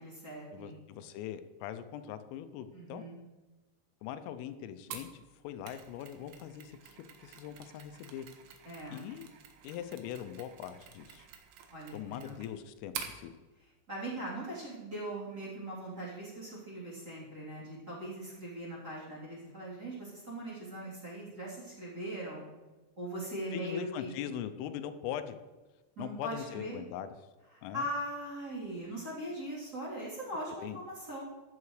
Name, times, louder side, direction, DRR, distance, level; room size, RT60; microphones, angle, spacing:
voice 1, 0.0-0.7 2.7-3.2 8.6-9.0 11.7-12.3 13.9-22.4 23.0-24.1 26.0-26.8 27.7-31.2, right 1 dB, 25° right, -8 dB, 3.0 m, -40 dB
voice 2, 0.5-3.0 4.0-8.3 8.9-9.3 9.6-11.3 11.9-13.3 23.5-25.4 26.0-27.1 27.6-27.9 30.6-30.8, left 10 dB, 85° left, 11 dB, 3.2 m, -41 dB
Mechanisms, 4.9-13.2, right 8 dB, 75° right, 3.1 m, -48 dB
14.0 x 10.5 x 3.2 m, 1.2 s
omnidirectional pair, 5.7 m